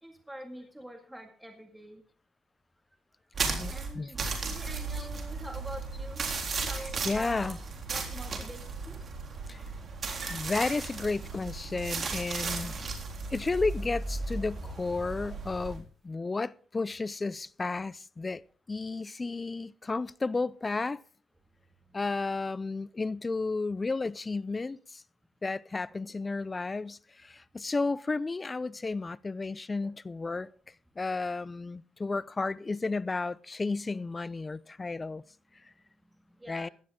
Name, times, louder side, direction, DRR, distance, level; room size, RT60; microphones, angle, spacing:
voice 1, 0.0-2.0 3.5-7.6 7.9-9.0 9.9-10.0 12.4-12.9 21.9-22.0 25.9-26.0 26.2-26.6 27.6-27.7 29.8-29.9 30.4-30.5 32.9-33.0 36.3-36.7, right 1 dB, 10° right, 2.0 m, -46 dB
sound 1, 3.3-15.8, right 4 dB, 45° right, 3.5 m, -35 dB
voice 2, 3.4-4.1 5.0-5.1 7.1-7.6 9.5-9.6 10.3-12.7 13.3-18.4 18.7-21.0 21.9-25.0 25.4-30.5 31.0-35.2 36.5-36.7, left 3 dB, 25° left, 0.5 m, -32 dB
16.5 x 12.0 x 3.6 m
cardioid pair, 90°, 0 cm